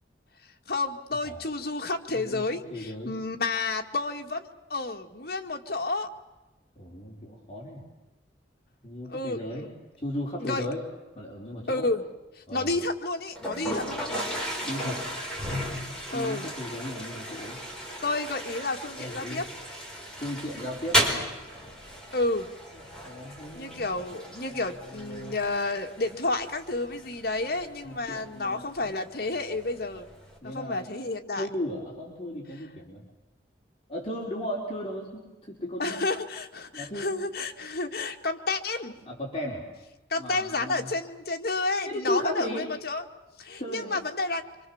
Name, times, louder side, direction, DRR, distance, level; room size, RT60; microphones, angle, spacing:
voice 1, 0.7-6.1 9.1-9.7 10.4-10.7 11.7-12.0 12.5-14.3 16.1-16.5 18.0-19.4 22.1-22.5 23.5-30.1 30.4-31.5 35.8-39.0 40.1-43.0 43.4-44.4, left 2 dB, 55° left, 4 dB, 2.1 m, -30 dB
voice 2, 2.1-3.1 6.8-7.8 8.8-10.8 11.1-11.9 12.5-12.7 14.6-15.0 16.1-17.6 18.9-19.4 20.2-21.1 23.0-23.9 24.4-24.6 24.9-25.3 27.8-28.9 30.4-30.8 31.4-33.0 33.9-36.1 36.7-37.1 39.1-39.6 40.2-40.9 41.8-42.7 43.6-44.0, left 1 dB, 30° left, -3 dB, 4.7 m, -36 dB
Toilet flush, 13.4-30.4, equal, 5° left, 5.2 m, -35 dB
26.5 x 26.0 x 7.3 m, 1.1 s
head